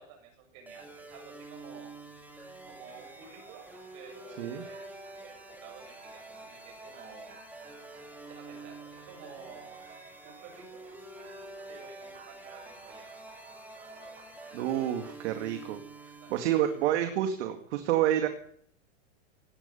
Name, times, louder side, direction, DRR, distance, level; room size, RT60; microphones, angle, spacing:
voice 1, 0.0-2.0 2.6-7.4 8.3-9.8 10.2-10.9 11.7-13.2 16.2-16.7, right 6 dB, 40° right, 4 dB, 7.6 m, -52 dB
sound 1, 0.7-17.1, right 2 dB, 5° right, 3.1 m, -48 dB
sound 2, 2.4-14.9, right 4 dB, 20° right, 6.4 m, -56 dB
voice 2, 14.5-15.8 16.3-18.3, right 11 dB, 60° right, 7 dB, 2.2 m, -28 dB
17.5 x 11.0 x 7.0 m, 0.62 s
hypercardioid pair, 135°, 39 cm